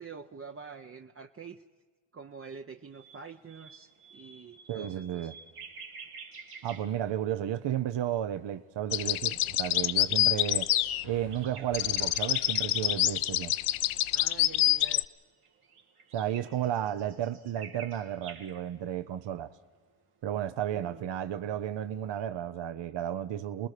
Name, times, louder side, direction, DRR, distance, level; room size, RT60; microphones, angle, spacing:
voice 1, 0.0-1.6 2.1-5.3 14.1-15.0 20.7-21.0, right 5 dB, 25° right, 0.7 m, -46 dB
sound 1, 2.9-7.7 8.0-8.5 9.3-9.4 10.1-12.9 15.2-18.8 22.1-22.3, right 5 dB, 90° right, 2.7 m, -50 dB
voice 2, 4.7-5.3 6.6-10.7 11.0-13.5 16.1-19.5 20.2-23.7, right 11 dB, 60° right, 0.8 m, -33 dB
sound 2, 8.9-11.4 11.7-15.0, left 14 dB, 75° left, 0.6 m, -27 dB
30.0 x 20.5 x 5.0 m
cardioid pair, 85°, 50 cm